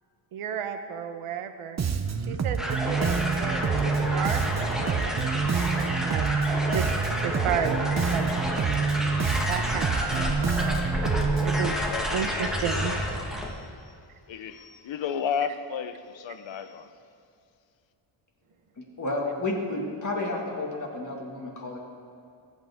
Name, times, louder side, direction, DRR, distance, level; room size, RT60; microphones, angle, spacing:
voice 1, 0.3-1.8 2.3-3.6 4.1-6.3 6.7-6.9 7.2-7.8 8.1-8.3 9.5-10.3 11.4-11.8 12.1-12.9, right 8 dB, 85° right, 0.8 m, -32 dB
Bass guitar, 1.8-11.7, right 5 dB, 35° right, 0.6 m, -27 dB
sound 1, 2.6-13.5, equal, ahead, 1.3 m, -30 dB
voice 2, 11.9-13.9 14.3-16.9, left 7 dB, 65° left, 0.8 m, -34 dB
voice 3, 18.8-21.8, left 2 dB, 35° left, 1.9 m, -31 dB
22.0 x 8.4 x 3.5 m
wide cardioid pair, 165°, 50 cm